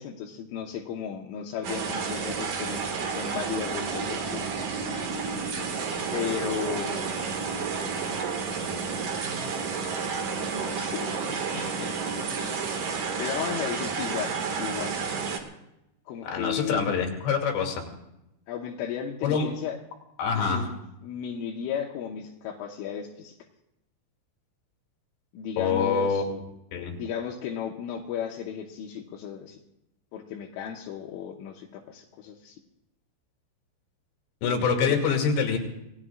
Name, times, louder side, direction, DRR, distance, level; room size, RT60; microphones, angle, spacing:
voice 1, 0.0-2.9 3.1-4.4 6.1-7.1 10.3-11.9 12.3-12.6 13.2-15.0 16.1-16.9 18.5-19.8 20.3-23.4 25.3-26.3 26.9-29.6 30.1-32.6 34.8-35.0, left 8 dB, 80° left, -1 dB, 3.7 m, -35 dB
sound 1, 1.6-15.4, right 5 dB, 55° right, 2.7 m, -31 dB
voice 2, 16.2-17.8 19.2-19.4 20.2-20.6 25.6-26.4 26.7-27.0 34.4-35.6, left 5 dB, 65° left, 2 dB, 4.5 m, -25 dB
28.0 x 20.0 x 2.5 m, 0.87 s
omnidirectional pair, 5.6 m